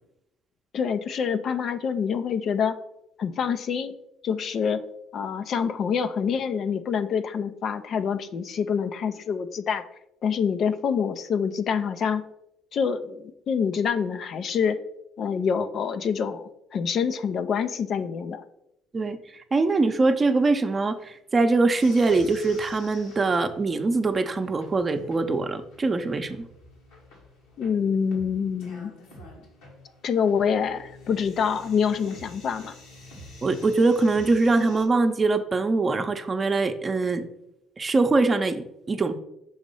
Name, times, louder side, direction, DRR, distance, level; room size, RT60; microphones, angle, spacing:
voice 1, 0.7-2.8 3.2-4.0 4.2-4.8 5.1-9.8 10.2-12.2 12.7-14.8 15.2-18.4 27.6-28.9 30.0-32.7, left 6 dB, 55° left, 10 dB, 0.5 m, -26 dB
voice 2, 18.9-26.4 33.4-37.2 37.8-39.1, right 3 dB, 35° right, 8 dB, 0.7 m, -23 dB
sound 1, 21.8-34.8, left 1 dB, 85° left, 1.7 m, -48 dB
6.3 x 3.0 x 5.4 m, 0.82 s
supercardioid pair, 70°, 0 cm